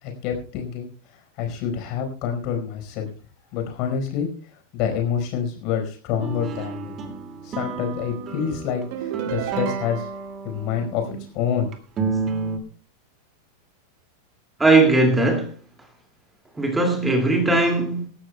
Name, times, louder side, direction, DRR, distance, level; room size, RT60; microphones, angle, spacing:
voice 1, 0.0-0.9 1.4-3.1 3.5-4.3 4.7-7.0 7.4-10.1 10.4-11.7 12.0-12.1, left 8 dB, 40° left, 4.7 m, -27 dB
sound 1, 6.2-11.2 11.7-12.6, right 4 dB, 25° right, 2.2 m, -31 dB
sound 2, 8.9-10.4, right 12 dB, 50° right, 0.9 m, -32 dB
voice 2, 14.6-15.6 16.6-18.1, right 2 dB, 10° right, 2.3 m, -19 dB
26.0 x 12.5 x 2.3 m
figure-of-eight pair, 90°, 0 cm